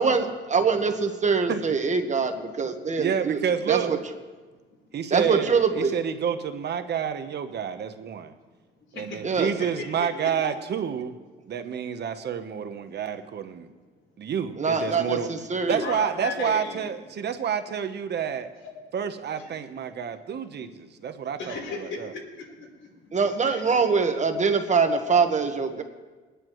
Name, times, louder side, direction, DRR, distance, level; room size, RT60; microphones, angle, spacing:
voice 1, 0.0-2.3 2.6-3.4 3.7-4.0 5.1-6.0 9.2-9.5 14.6-15.8 23.1-25.8, right 5 dB, 35° right, 6 dB, 1.3 m, -23 dB
voice 2, 3.0-4.0 4.9-8.3 9.0-11.2 11.5-13.7 14.2-15.3 15.7-18.5 18.9-22.1, right 8 dB, 55° right, 8 dB, 1.0 m, -29 dB
voice 3, 4.5-5.4 8.8-10.6 13.6-13.8 14.1-14.2 15.7-16.8 19.4-19.9 20.6-23.8, left 4 dB, 75° left, -1 dB, 4.1 m, -38 dB
23.0 x 9.7 x 3.1 m, 1.3 s
cardioid pair, 90°, 20 cm